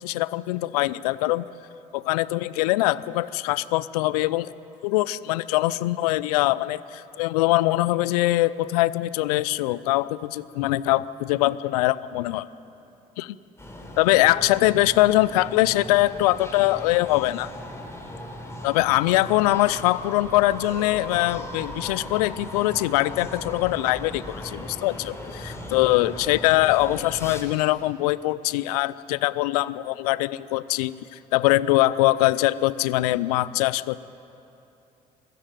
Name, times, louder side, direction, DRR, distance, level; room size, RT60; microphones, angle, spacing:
voice 1, 0.0-1.4 1.9-4.5 4.8-12.5 13.2-13.4 14.0-17.5 18.6-34.0, left 17 dB, 75° left, 19 dB, 0.5 m, -22 dB
sound 1, 13.6-27.4, left 1 dB, 15° left, 4.1 m, -38 dB
22.0 x 13.5 x 9.3 m, 2.9 s
hypercardioid pair, 55°, 20 cm